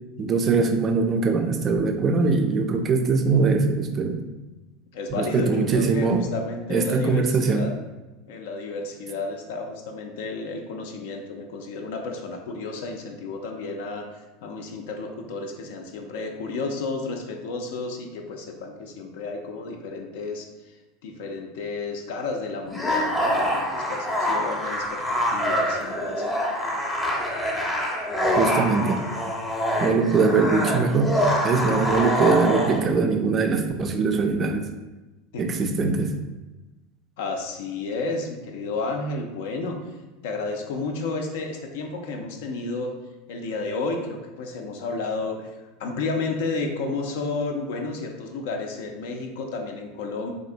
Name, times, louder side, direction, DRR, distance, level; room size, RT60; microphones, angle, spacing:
voice 1, 0.2-4.2 5.1-6.3 6.7-7.6 28.4-29.0 29.8-31.2 31.4-34.7 35.4-36.1, right 4 dB, 30° right, 6 dB, 0.3 m, -22 dB
voice 2, 4.9-7.7 8.3-26.3 35.3-35.4 37.2-39.8 40.2-42.9 43.3-50.3, left 3 dB, 60° left, 3 dB, 0.4 m, -32 dB
sound 1, 22.7-32.8, equal, 5° left, 0.7 m, -25 dB
3.3 x 2.5 x 2.6 m, 1.1 s
figure-of-eight pair, 80°, 0 cm